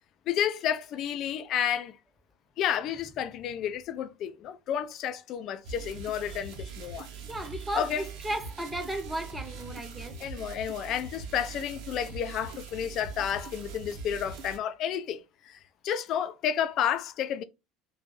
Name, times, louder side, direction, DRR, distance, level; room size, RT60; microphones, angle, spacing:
voice 1, 0.3-2.0 2.6-7.1 7.7-8.1 10.2-17.4, left 9 dB, 45° left, 0.3 m, -31 dB
sound 1, 5.6-14.6, right 5 dB, 55° right, 0.6 m, -42 dB
voice 2, 6.3-6.7 7.3-10.2, right 1 dB, 10° right, 0.6 m, -36 dB
2.5 x 2.0 x 3.7 m
figure-of-eight pair, 70°, 0 cm